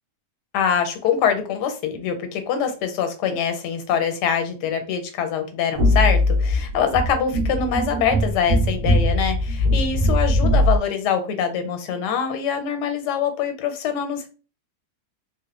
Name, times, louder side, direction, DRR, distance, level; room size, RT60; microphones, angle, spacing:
voice 1, 0.5-14.3, left 7 dB, 90° left, 7 dB, 1.2 m, -24 dB
sound 1, 5.8-10.8, left 1 dB, 65° right, 1.0 m, -20 dB
3.0 x 2.0 x 2.3 m, 0.34 s
omnidirectional pair, 1.7 m